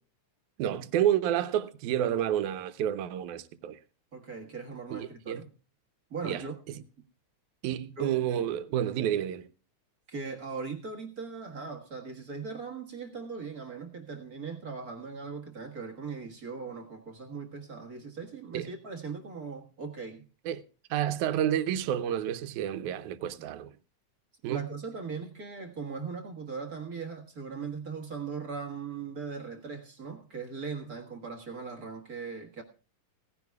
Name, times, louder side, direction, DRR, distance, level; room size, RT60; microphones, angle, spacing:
voice 1, 0.6-3.8 4.9-5.4 6.2-6.4 7.6-9.5 18.5-18.7 20.5-20.6 20.9-23.7 24.4-24.6, right 11 dB, 80° right, 2.1 m, -29 dB
voice 2, 4.1-5.5 6.1-6.6 8.0-8.2 10.1-20.2 24.5-32.6, right 5 dB, 40° right, 1.5 m, -39 dB
17.5 x 15.0 x 2.3 m
omnidirectional pair, 3.4 m